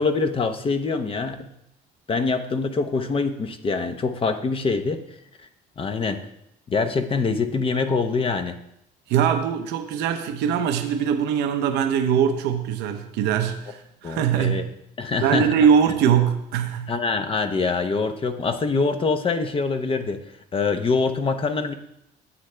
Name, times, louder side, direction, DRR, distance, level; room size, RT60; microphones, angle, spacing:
voice 1, 0.0-1.5 2.1-5.0 5.8-6.2 6.7-8.6 14.0-14.6 15.0-15.5 16.9-20.2 20.5-21.7, left 4 dB, 30° left, 8 dB, 0.8 m, -24 dB
voice 2, 9.1-14.7 15.2-16.9, right 8 dB, 90° right, 6 dB, 0.7 m, -22 dB
9.8 x 7.6 x 3.3 m, 0.79 s
cardioid pair, 110°, 17 cm